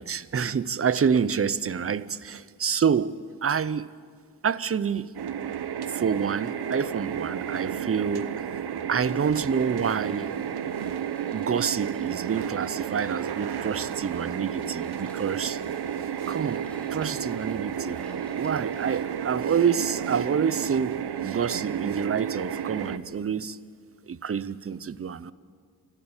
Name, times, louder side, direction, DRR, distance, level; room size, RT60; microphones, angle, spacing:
voice 1, 0.0-3.2 3.4-3.9 4.4-5.1 5.9-8.4 8.9-10.3 11.3-15.6 16.3-23.6 24.1-25.3, right 7 dB, 35° right, 0.5 m, -27 dB
sound 1, 5.1-23.0, right 8 dB, 70° right, 0.8 m, -32 dB
sound 2, 9.5-19.0, left 1 dB, 5° left, 4.1 m, -55 dB
29.5 x 13.0 x 7.2 m
wide cardioid pair, 115°, 40 cm